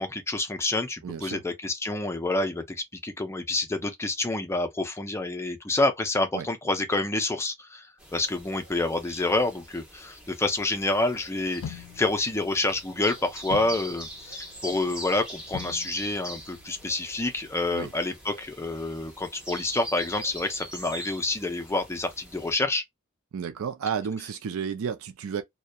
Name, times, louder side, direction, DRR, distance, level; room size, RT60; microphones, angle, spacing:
voice 1, 0.0-22.8, left 2 dB, 10° left, 0.4 m, -28 dB
voice 2, 1.0-1.4 6.3-6.5 17.7-17.9 23.3-25.4, right 7 dB, 70° right, 0.4 m, -32 dB
sound 1, 8.0-22.5, right 1 dB, 5° right, 0.9 m, -43 dB
sound 2, 11.6-17.7, left 7 dB, 80° left, 0.4 m, -45 dB
2.7 x 2.1 x 2.2 m
head